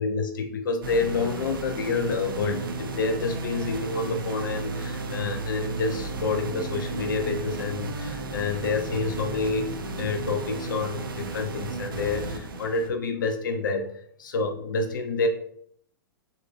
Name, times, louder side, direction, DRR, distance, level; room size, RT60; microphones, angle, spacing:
voice 1, 0.0-13.9 14.2-15.3, left 4 dB, 65° left, 5 dB, 0.5 m, -28 dB
sound 1, 0.8-12.9, right 3 dB, 70° right, 0.4 m, -33 dB
2.8 x 2.4 x 2.4 m, 0.65 s
figure-of-eight pair, 105°, 12 cm